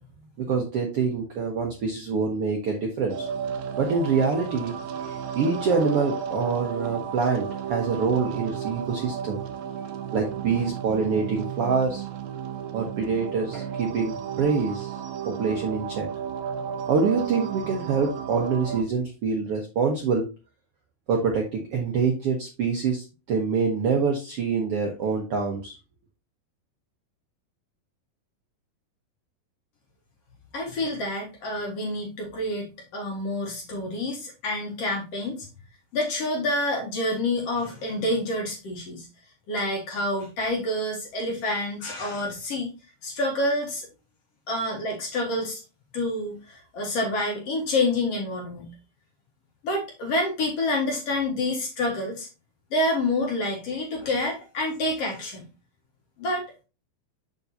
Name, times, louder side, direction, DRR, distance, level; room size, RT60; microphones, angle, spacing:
voice 1, 0.4-3.3 3.8-4.7 5.0-9.4 10.1-12.0 12.7-14.9 15.2-16.1 16.9-20.3 21.1-25.7, right 5 dB, 70° right, 1 dB, 1.4 m, -25 dB
sound 1, 3.1-18.8, right 8 dB, 85° right, 2.5 m, -33 dB
voice 2, 30.5-35.5 35.9-39.1 39.5-42.7 43.0-43.9 44.5-45.6 45.9-48.7 49.6-52.3 52.7-55.5 56.2-56.5, left 1 dB, 55° left, 1 dB, 2.1 m, -28 dB
6.9 x 6.8 x 2.7 m, 0.29 s
omnidirectional pair, 4.1 m